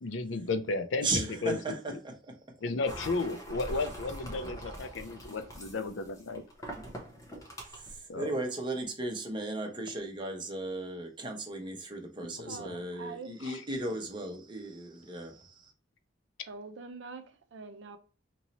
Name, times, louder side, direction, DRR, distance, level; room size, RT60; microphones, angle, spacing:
voice 1, 0.0-2.0 2.6-6.4 8.1-8.3 12.5-12.7 13.4-13.6, left 3 dB, 80° left, 0.5 m, -34 dB
voice 2, 1.0-2.3 7.7-15.7, right 2 dB, 25° right, 0.9 m, -36 dB
sound 1, 2.9-8.0, equal, 20° left, 0.7 m, -43 dB
voice 3, 12.4-13.3 16.5-18.0, right 4 dB, 70° right, 0.6 m, -44 dB
3.0 x 2.8 x 4.0 m
head